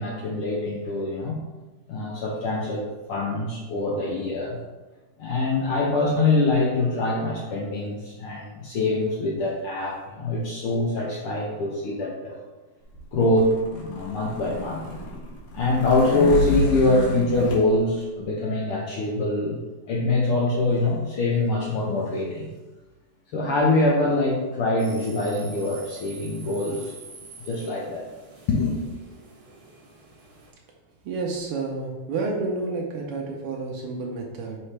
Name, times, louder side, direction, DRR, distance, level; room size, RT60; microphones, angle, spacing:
voice 1, 0.0-1.4 1.9-4.6 5.2-12.4 13.1-14.9 15.5-19.6 19.9-22.5 23.3-26.9 27.5-28.1 28.5-28.8, left 2 dB, 70° left, -2 dB, 1.3 m, -24 dB
sound 1, 13.0-17.6, left 2 dB, 85° left, 2.7 m, -30 dB
sound 2, 24.8-30.5, right 3 dB, 55° right, 1.1 m, -46 dB
voice 2, 31.0-34.6, right 3 dB, 80° right, 0 dB, 1.3 m, -30 dB
5.6 x 5.0 x 3.3 m, 1.2 s
omnidirectional pair, 3.4 m